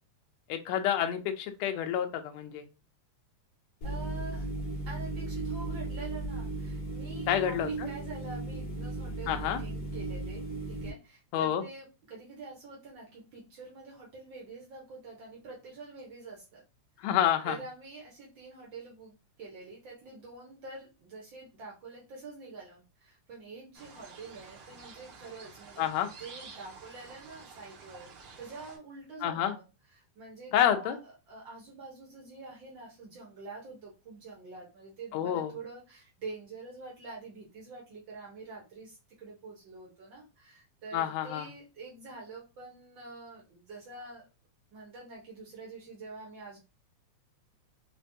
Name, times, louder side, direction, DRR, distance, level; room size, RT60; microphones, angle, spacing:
voice 1, 0.5-2.6 7.3-7.9 9.3-9.6 11.3-11.6 17.0-17.6 25.8-26.1 29.2-29.6 30.5-31.0 35.1-35.5 40.9-41.5, left 10 dB, 80° left, 6 dB, 1.6 m, -28 dB
sound 1, 3.8-10.9, right 2 dB, 60° left, 1.0 m, -36 dB
voice 2, 3.8-4.5 4.8-16.6 17.0-17.1 17.4-28.1 28.4-29.6 29.9-44.3 44.7-46.6, right 3 dB, 80° right, -3 dB, 1.0 m, -46 dB
sound 2, 23.7-28.8, right 5 dB, 60° right, 1.6 m, -50 dB
5.1 x 2.1 x 2.6 m, 0.29 s
omnidirectional pair, 3.4 m